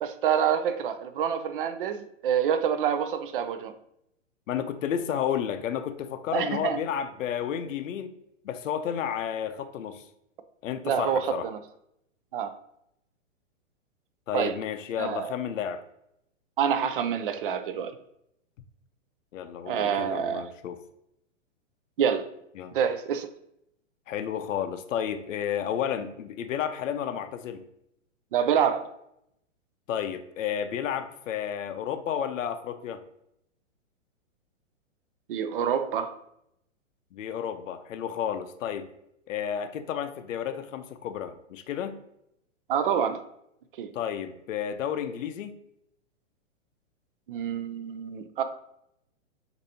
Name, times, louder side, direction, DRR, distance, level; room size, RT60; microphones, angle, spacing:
voice 1, 0.0-3.7 6.3-6.8 10.8-11.6 12.3-12.5 14.3-14.6 15.0-15.3 16.6-17.9 19.7-20.5 22.0-22.3 22.7-23.3 28.3-28.9 35.3-36.1 42.7-43.2 43.8-43.9 47.3-48.4, right 8 dB, 45° right, 10 dB, 0.4 m, -27 dB
voice 2, 4.5-8.1 8.4-10.0 10.6-11.5 14.3-15.8 19.3-20.8 22.6-22.7 24.1-27.6 29.9-33.0 37.1-38.9 39.3-42.0 43.9-45.6, left 9 dB, 80° left, 9 dB, 0.6 m, -31 dB
6.6 x 2.7 x 2.8 m, 0.79 s
hypercardioid pair, 155°, 38 cm